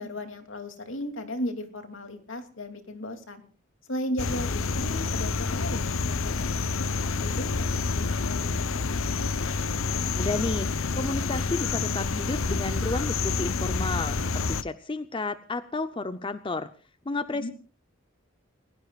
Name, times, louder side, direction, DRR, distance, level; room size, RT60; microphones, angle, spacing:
voice 1, 0.0-3.4 3.8-9.3 17.3-17.5, left 1 dB, 70° left, 6 dB, 2.8 m, -36 dB
sound 1, 4.2-14.6, left 4 dB, 90° left, 0.8 m, -28 dB
voice 2, 10.2-16.7 17.1-17.5, left 3 dB, 25° left, 11 dB, 0.7 m, -32 dB
30.0 x 17.0 x 2.4 m, 0.37 s
head